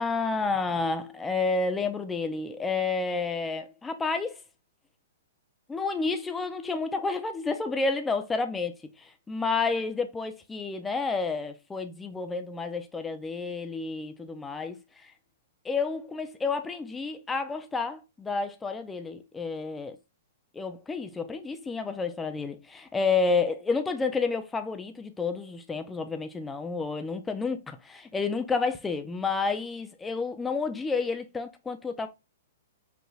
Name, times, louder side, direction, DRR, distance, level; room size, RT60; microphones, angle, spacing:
voice 1, 0.0-4.4 5.7-15.1 15.6-20.0 20.5-32.1, left 4 dB, 10° left, 0.6 m, -30 dB
5.4 x 2.9 x 2.4 m
hypercardioid pair, 125°, 0 cm